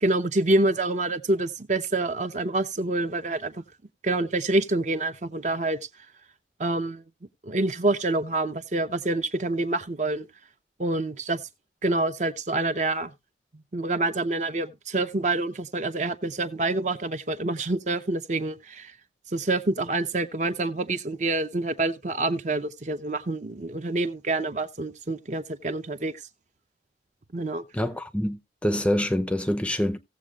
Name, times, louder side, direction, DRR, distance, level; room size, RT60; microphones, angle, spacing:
voice 1, 0.0-3.5 4.0-5.8 6.6-7.0 7.4-10.3 10.8-11.4 11.8-13.1 13.7-18.9 19.3-26.2 27.3-27.6, right 2 dB, 45° right, 0.8 m, -27 dB
voice 2, 27.7-30.0, left 1 dB, 5° left, 0.5 m, -26 dB
17.0 x 7.4 x 2.4 m
head